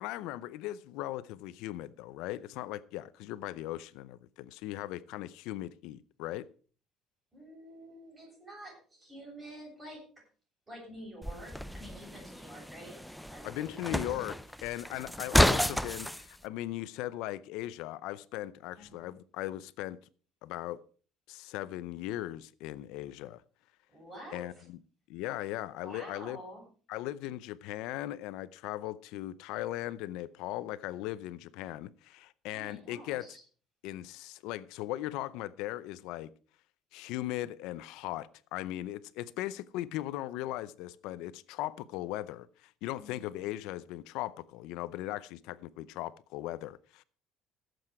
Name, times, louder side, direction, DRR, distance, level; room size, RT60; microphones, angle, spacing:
voice 1, 0.0-6.5 13.4-20.0 20.4-20.8 21.3-23.4 24.3-24.8 25.1-26.4 26.9-33.4 33.8-36.3 36.9-47.0, left 15 dB, 80° left, 0.6 m, -38 dB
voice 2, 7.3-10.0 10.7-13.0 13.3-14.1 18.8-19.1 23.9-24.7 25.8-26.6 32.5-33.4 43.0-43.3, equal, 15° right, 7.7 m, -48 dB
sound 1, 11.2-16.2, equal, ahead, 0.5 m, -31 dB
16.5 x 7.9 x 4.8 m
cardioid pair, 155°, 0 cm